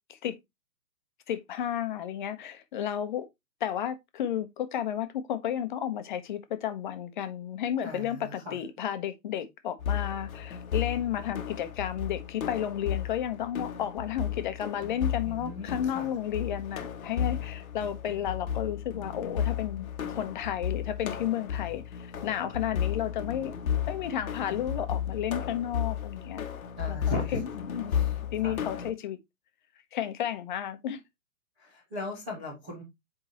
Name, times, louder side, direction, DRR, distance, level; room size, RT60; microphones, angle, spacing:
voice 1, 1.3-3.3 3.6-23.6 23.9-26.5 26.9-29.2 29.9-31.0, left 10 dB, 30° left, 0.9 m, -32 dB
voice 2, 7.8-8.6 15.2-16.1 26.8-27.4 27.9-28.2 28.4-28.6 31.6-32.8, left 1 dB, 5° right, 0.5 m, -38 dB
sound 1, 9.8-28.9, left 9 dB, 60° left, 1.1 m, -34 dB
8.0 x 4.8 x 2.9 m
figure-of-eight pair, 130°, 49 cm